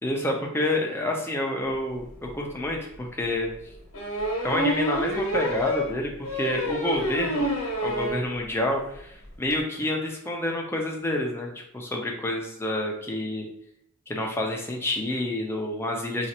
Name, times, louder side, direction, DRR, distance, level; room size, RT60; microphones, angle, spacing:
voice 1, 0.0-3.5 4.4-7.5 7.8-13.5 14.1-16.3, left 1 dB, 10° left, 0 dB, 0.5 m, -28 dB
sound 1, 2.2-2.3 2.6-2.7 3.9-8.2 8.6-8.7 9.0-9.1 9.3-9.5, equal, 85° left, 0.9 m, -28 dB
4.2 x 2.4 x 2.8 m, 0.76 s
head